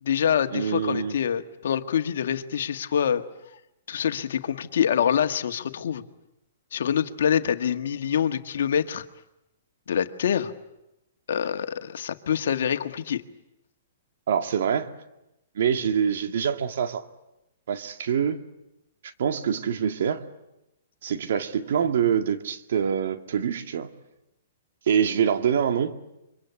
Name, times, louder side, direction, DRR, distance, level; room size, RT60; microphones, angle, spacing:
voice 1, 0.0-3.2 3.9-6.0 6.7-9.1 9.9-10.5 11.3-13.2, left 8 dB, 70° left, 8 dB, 1.6 m, -25 dB
voice 2, 0.5-1.2 14.3-14.9 15.6-17.1 17.7-18.4 19.0-20.2 21.0-23.9 24.9-26.0, right 8 dB, 65° right, 7 dB, 2.0 m, -25 dB
27.0 x 24.0 x 8.4 m, 0.90 s
hypercardioid pair, 140°, 0 cm